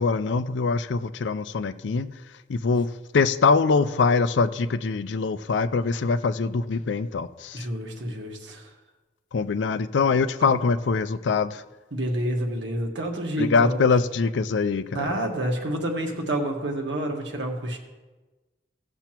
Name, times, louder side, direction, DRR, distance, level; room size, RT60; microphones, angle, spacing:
voice 1, 0.0-2.2 2.5-7.7 9.3-11.6 13.4-15.2, left 4 dB, 85° left, 13 dB, 0.5 m, -23 dB
voice 2, 7.5-8.7 10.4-10.5 11.9-13.8 14.9-17.8, right 1 dB, 85° right, 1 dB, 1.5 m, -28 dB
17.0 x 6.9 x 3.0 m, 1.2 s
head